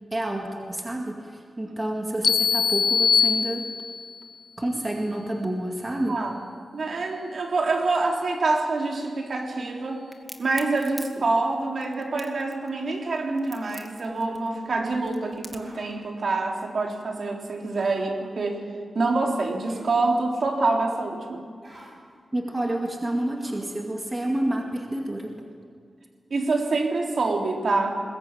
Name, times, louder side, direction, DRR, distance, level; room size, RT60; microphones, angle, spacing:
voice 1, 0.1-3.7 4.6-6.2 22.3-25.4, right 1 dB, 20° right, 1 dB, 2.1 m, -29 dB
sound 1, 2.2-4.1, left 6 dB, 75° left, 0.9 m, -22 dB
voice 2, 6.1-6.4 6.7-10.1 10.4-18.7 18.9-21.4 26.3-28.0, right 3 dB, 55° right, 1 dB, 3.5 m, -26 dB
Crack, 10.1-15.8, equal, ahead, 1.9 m, -44 dB
sound 2, 13.5-13.8 15.6-15.8 17.7-18.0 19.6-20.0 21.6-21.9 23.4-23.7, right 1 dB, 35° right, 7.5 m, -49 dB
21.5 x 21.0 x 9.0 m, 2.2 s
wide cardioid pair, 170°, 0 cm